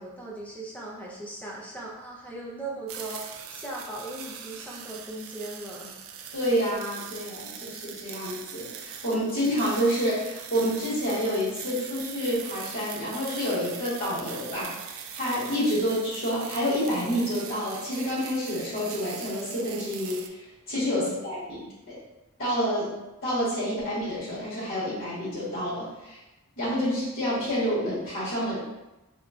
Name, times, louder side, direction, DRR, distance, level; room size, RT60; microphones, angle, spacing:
voice 1, 0.0-5.9 20.7-21.2, right 2 dB, 5° left, -3 dB, 0.5 m, -39 dB
sound 1, 2.9-20.3, right 8 dB, 65° right, 0.3 m, -41 dB
voice 2, 6.3-20.4 20.7-22.0 22.4-22.9 23.2-26.2 26.6-28.6, equal, 65° left, -9 dB, 1.3 m, -28 dB
3.8 x 2.3 x 2.3 m, 1.0 s
head